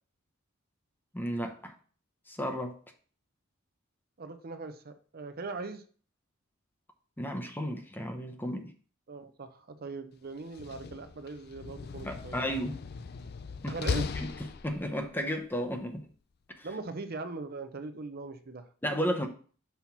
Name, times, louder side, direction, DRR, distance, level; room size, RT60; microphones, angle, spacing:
voice 1, 1.1-1.7 2.3-2.8 7.2-8.7 12.0-12.8 13.6-13.8 14.6-16.1 16.6-16.7 18.8-19.3, equal, 10° left, 0.8 m, -33 dB
voice 2, 4.2-5.8 9.1-12.4 13.7-14.1 16.6-18.7, right 3 dB, 50° right, 0.6 m, -40 dB
Slam, 10.4-15.1, left 5 dB, 50° left, 0.5 m, -38 dB
5.7 x 4.3 x 5.9 m
head